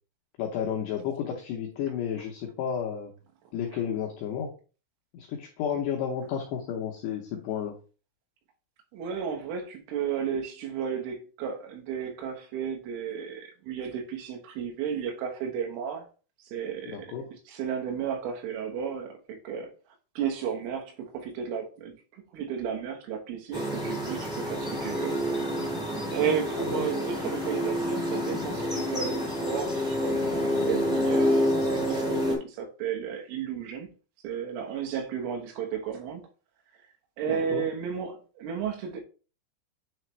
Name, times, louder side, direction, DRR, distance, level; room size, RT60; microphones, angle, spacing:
voice 1, 0.4-3.1 3.5-4.5 5.1-7.8 16.9-17.2 26.6-26.9 37.3-37.6, left 8 dB, 85° left, 2.4 m, -32 dB
voice 2, 8.9-16.1 16.5-17.1 17.5-19.7 20.2-25.2 26.1-33.9 34.2-36.2 37.2-39.0, right 7 dB, 80° right, 3.7 m, -33 dB
sound 1, 23.5-32.3, equal, 5° right, 0.7 m, -28 dB
9.8 x 3.3 x 3.1 m
omnidirectional pair, 5.9 m